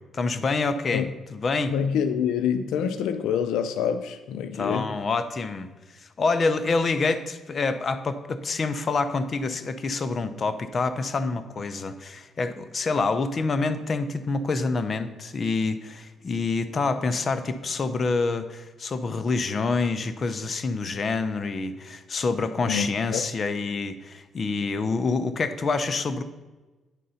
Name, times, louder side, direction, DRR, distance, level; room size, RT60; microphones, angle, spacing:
voice 1, 0.1-1.1 1.3-1.7 4.6-26.2, left 4 dB, 40° left, 0.6 m, -27 dB
voice 2, 1.7-4.9 22.7-23.2, left 8 dB, 90° left, 0.4 m, -26 dB
9.1 x 3.8 x 5.5 m
cardioid pair, 90°, 0 cm